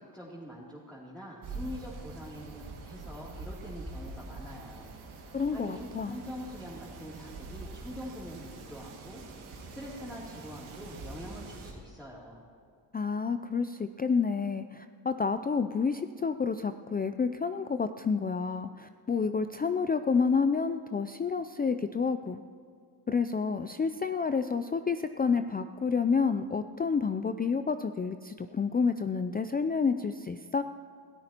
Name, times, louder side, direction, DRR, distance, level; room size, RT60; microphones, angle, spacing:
voice 1, 0.0-5.2 5.5-9.2 9.7-12.4, equal, 5° left, -7 dB, 2.9 m, -44 dB
sound 1, 1.4-11.7, right 3 dB, 75° right, 2.2 m, -44 dB
voice 2, 5.3-6.2 12.9-22.4 23.1-30.6, left 5 dB, 20° left, 9 dB, 0.4 m, -29 dB
22.0 x 13.5 x 3.0 m, 2.3 s
supercardioid pair, 60°, 49 cm